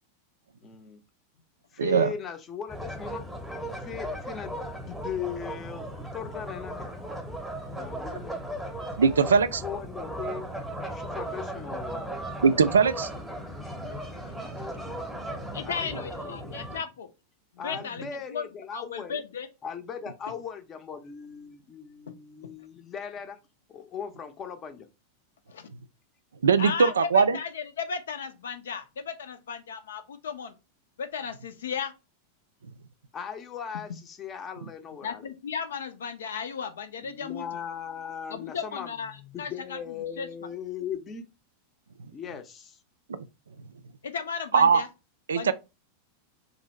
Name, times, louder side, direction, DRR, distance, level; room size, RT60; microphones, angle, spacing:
voice 1, 0.6-1.0 1.7-3.2 3.8-7.0 7.7-8.4 9.6-10.5 10.9-12.2 13.2-13.4 14.4-16.8 17.6-19.2 19.6-23.4 23.7-24.9 27.3-27.4 33.1-35.3 37.0-41.2 42.1-42.8, left 7 dB, 25° left, 0.6 m, -39 dB
voice 2, 1.8-2.1 9.0-9.6 12.4-13.1 26.4-27.4 43.1-43.2 44.5-44.8 45.3-45.5, right 6 dB, 70° right, 0.3 m, -20 dB
sound 1, 2.7-16.8, right 1 dB, ahead, 0.9 m, -37 dB
voice 3, 15.5-17.1 17.6-18.0 18.3-18.4 18.7-19.5 22.1-22.2 25.5-25.7 26.6-30.5 31.0-31.9 35.0-37.4 38.3-39.1 39.4-39.8 40.2-40.3 44.0-44.9 45.3-45.5, left 6 dB, 65° left, 0.5 m, -35 dB
3.0 x 2.6 x 4.2 m
figure-of-eight pair, 90°, 0 cm